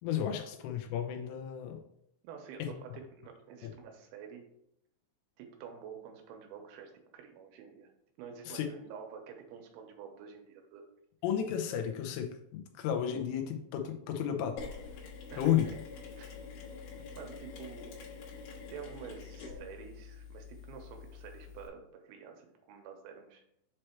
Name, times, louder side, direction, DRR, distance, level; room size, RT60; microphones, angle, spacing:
voice 1, 0.0-1.8 2.6-2.7 3.6-3.7 8.5-8.7 11.2-14.6 15.4-15.7, left 9 dB, 90° left, 4 dB, 3.4 m, -33 dB
voice 2, 2.2-4.5 5.4-7.9 8.2-10.8 15.3-15.6 16.2-16.4 17.1-17.9 18.7-23.4, right 7 dB, 80° right, 3 dB, 3.1 m, -48 dB
Mechanisms, 14.6-21.7, left 5 dB, 70° left, 3.6 m, -46 dB
7.8 x 3.3 x 4.3 m, 0.75 s
omnidirectional pair, 5.6 m